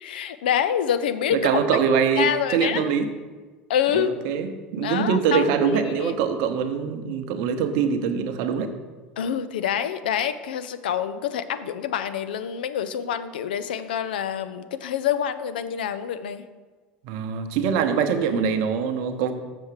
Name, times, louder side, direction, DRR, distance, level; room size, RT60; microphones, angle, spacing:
voice 1, 0.0-1.5 2.2-2.8 3.7-4.1 4.8-5.5 5.8-6.1 9.2-16.4, left 9 dB, 75° left, 12 dB, 0.5 m, -26 dB
voice 2, 1.3-3.1 3.9-8.7 17.0-19.3, right 6 dB, 65° right, 8 dB, 0.8 m, -23 dB
7.0 x 6.5 x 4.8 m, 1.3 s
hypercardioid pair, 75°, 5 cm